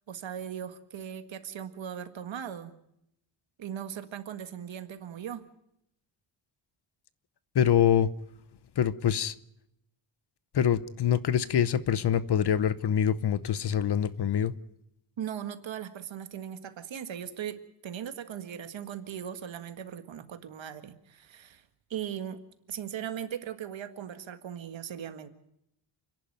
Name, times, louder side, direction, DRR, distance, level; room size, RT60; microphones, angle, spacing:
voice 1, 0.1-2.7 3.6-5.5 15.2-17.6 17.8-21.6 21.9-22.4 22.7-25.3, right 9 dB, 65° right, 1.8 m, -38 dB
voice 2, 7.5-8.1 8.8-9.3 10.5-14.5, left 9 dB, 50° left, 0.9 m, -25 dB
29.0 x 11.0 x 9.2 m
wide cardioid pair, 155°, 50 cm